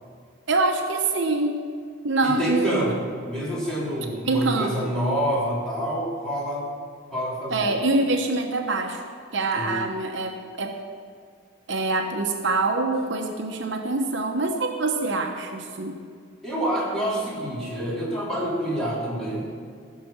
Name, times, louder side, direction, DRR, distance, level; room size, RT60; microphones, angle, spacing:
voice 1, 0.5-1.6 2.0-3.0 4.3-4.9 7.5-9.0 9.3-10.8 11.7-16.0, right 3 dB, 60° right, 3 dB, 0.9 m, -25 dB
voice 2, 2.2-6.7 7.1-7.7 9.6-9.9 16.4-19.5, equal, 5° left, -7 dB, 3.5 m, -27 dB
16.0 x 6.5 x 7.3 m, 2.1 s
head